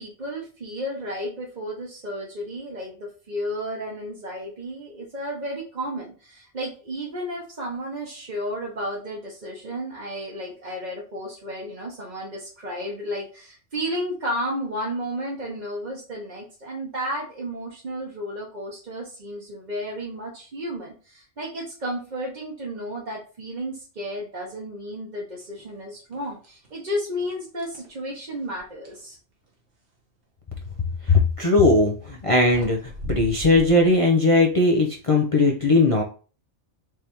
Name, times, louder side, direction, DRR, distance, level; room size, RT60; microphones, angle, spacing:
voice 1, 0.0-29.2, equal, 40° right, -3 dB, 1.0 m, -33 dB
sound 1, 25.6-25.8 26.1-26.8 27.2-29.1 31.3-31.6 32.2-32.3 32.5-34.0, equal, 65° right, 1.4 m, -38 dB
voice 2, 31.0-36.0, left 2 dB, 35° left, -1 dB, 0.6 m, -19 dB
4.7 x 3.3 x 2.9 m, 0.37 s
omnidirectional pair, 1.2 m